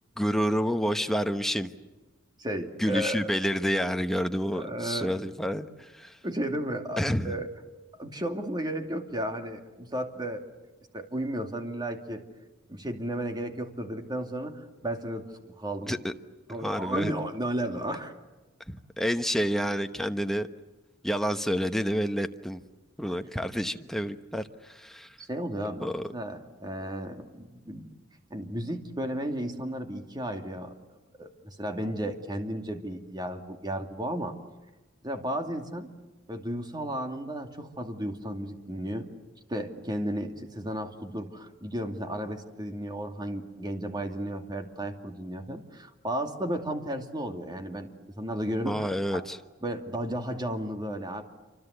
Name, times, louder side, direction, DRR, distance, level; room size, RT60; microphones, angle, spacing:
voice 1, 0.2-1.7 2.8-6.2 7.0-7.4 15.9-16.1 16.6-17.1 18.7-20.5 21.0-22.6 23.0-25.1 25.8-26.1 48.6-49.4, equal, ahead, 1.1 m, -29 dB
voice 2, 2.4-3.3 4.5-5.2 6.2-7.5 8.0-10.5 10.9-12.2 12.7-15.2 15.6-15.9 16.5-18.1 25.2-27.8 28.3-30.7 31.2-34.3 35.0-35.9 36.3-39.1 39.5-47.9 48.2-49.2 49.6-51.2, right 1 dB, 20° right, 2.5 m, -33 dB
28.0 x 25.5 x 8.2 m
head